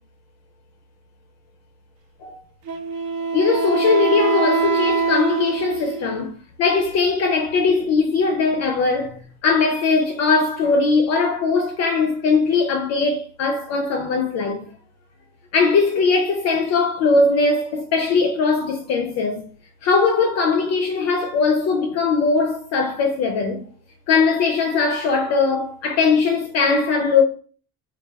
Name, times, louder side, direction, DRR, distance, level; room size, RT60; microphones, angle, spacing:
Wind instrument woodwind instrument, 2.7-6.3, right 4 dB, 60° right, 0.8 m, -23 dB
voice 1, 3.3-14.7 15.5-19.4 19.8-23.6 24.1-27.2, left 4 dB, 50° left, 0.4 m, -20 dB
3.3 x 2.3 x 3.3 m
cardioid pair, 170°, 36 cm